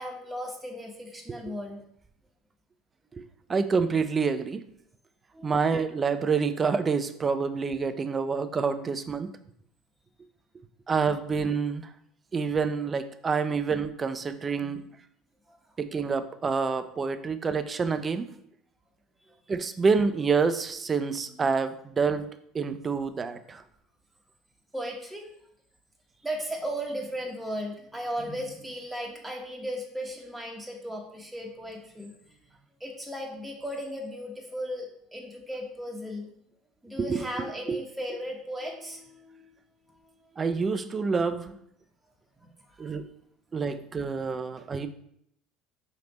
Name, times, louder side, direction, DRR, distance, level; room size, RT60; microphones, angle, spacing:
voice 1, 0.0-1.8 5.3-5.6 14.6-14.7 15.5-15.6 19.2-19.4 24.7-25.3 26.2-32.1 32.5-36.3 36.8-39.4 42.4-42.5 42.8-42.9, equal, 10° right, 0 dB, 0.8 m, -36 dB
voice 2, 3.5-4.6 5.4-9.3 10.9-11.9 12.3-14.8 15.8-18.3 19.5-22.3 22.5-23.6 37.0-37.2 37.7-37.8 40.4-41.6 42.8-43.1 43.5-44.9, right 5 dB, 30° right, 12 dB, 0.4 m, -27 dB
4.8 x 3.3 x 3.0 m, 0.71 s
hypercardioid pair, 70°, 0 cm